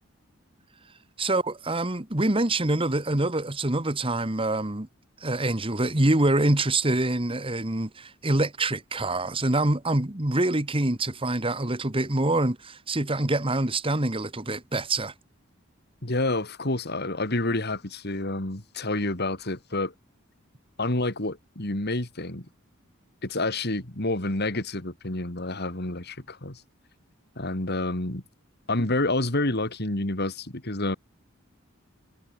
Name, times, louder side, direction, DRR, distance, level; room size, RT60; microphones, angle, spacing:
voice 1, 1.2-4.9 5.2-15.1, right 2 dB, 25° right, 1.7 m, -25 dB
voice 2, 16.0-19.9 20.8-22.4 23.2-26.6 27.4-28.2 28.7-31.0, left 2 dB, 50° left, 3.2 m, -28 dB
head